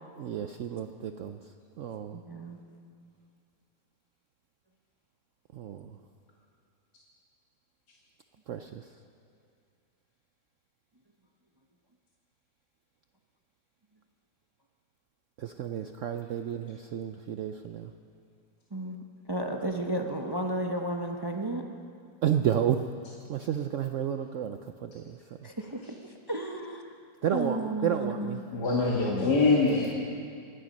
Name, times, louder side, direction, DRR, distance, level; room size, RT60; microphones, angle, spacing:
voice 1, 0.2-1.4 1.8-2.2 5.5-6.0 8.5-8.9 15.4-17.9 22.2-22.9 23.3-25.5 27.2-28.4, right 9 dB, 75° right, 7 dB, 0.7 m, -31 dB
voice 2, 2.1-2.6 18.7-21.6 25.4-25.8 26.3-26.8 27.3-28.5 29.1-29.4, right 1 dB, 30° right, 3 dB, 0.4 m, -33 dB
voice 3, 28.5-29.9, left 3 dB, 65° left, -4 dB, 2.3 m, -24 dB
25.0 x 10.0 x 5.3 m, 2.4 s
omnidirectional pair, 1.9 m